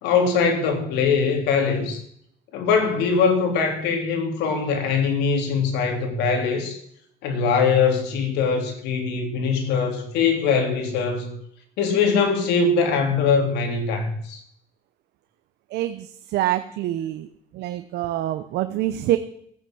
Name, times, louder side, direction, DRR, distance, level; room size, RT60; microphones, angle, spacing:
voice 1, 0.0-2.0 2.5-6.8 7.2-11.4 11.8-14.4, left 5 dB, 90° left, 4 dB, 3.5 m, -22 dB
voice 2, 15.7-16.1 16.3-17.3 17.5-19.2, right 14 dB, 80° right, 9 dB, 0.9 m, -25 dB
15.5 x 9.1 x 7.8 m, 0.69 s
cardioid pair, 110°, 17 cm